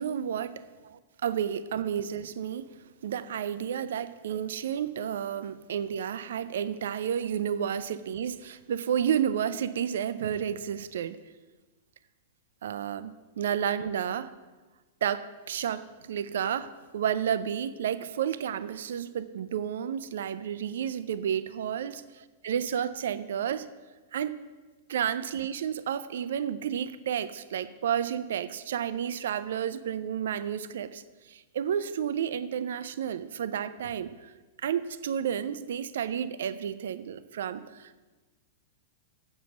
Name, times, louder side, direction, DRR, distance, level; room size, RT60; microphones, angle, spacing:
voice 1, 0.0-2.8 3.0-11.2 12.6-14.3 15.0-22.0 22.4-23.7 24.1-24.4 24.9-34.3 34.6-38.0, right 9 dB, 60° right, 14 dB, 0.4 m, -31 dB
8.1 x 7.4 x 6.2 m, 1.3 s
figure-of-eight pair, 100°, 0 cm